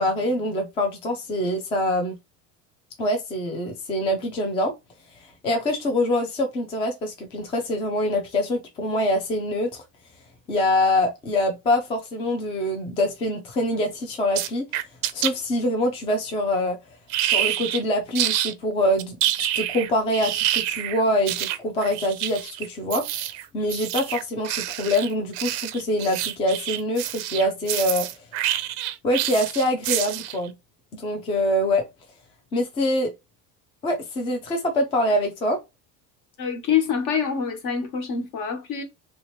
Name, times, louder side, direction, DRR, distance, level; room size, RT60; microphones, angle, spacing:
voice 1, 0.0-2.1 3.0-4.7 5.2-9.8 10.5-14.7 15.1-16.8 17.2-23.0 23.5-28.3 29.0-30.5 30.9-31.8 32.5-33.1 33.8-35.6, left 1 dB, 15° left, 0.3 m, -24 dB
sound 1, 14.3-15.3 17.1-17.8 18.1-18.5 19.0-30.4, right 13 dB, 45° right, 0.4 m, -27 dB
voice 2, 36.4-38.8, left 7 dB, 50° left, 1.2 m, -25 dB
3.1 x 2.8 x 3.0 m
cardioid pair, 160°, 39 cm